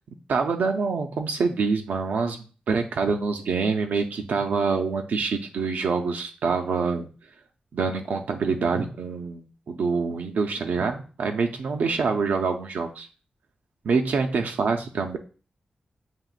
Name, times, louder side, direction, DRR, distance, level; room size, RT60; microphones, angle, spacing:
voice 1, 0.3-2.4 2.7-7.1 7.7-13.1 13.8-15.2, right 4 dB, 80° right, 5 dB, 0.4 m, -26 dB
7.3 x 2.9 x 2.4 m, 0.37 s
wide cardioid pair, 170°, 3 cm